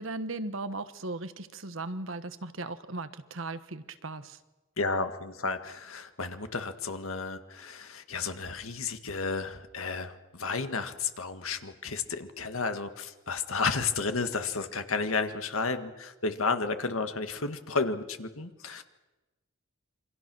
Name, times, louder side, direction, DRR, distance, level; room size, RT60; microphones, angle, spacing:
voice 1, 0.0-4.4, right 2 dB, 70° right, 11 dB, 1.2 m, -37 dB
voice 2, 4.8-18.8, left 4 dB, 80° left, 8 dB, 1.7 m, -32 dB
27.5 x 24.5 x 6.2 m, 1.1 s
head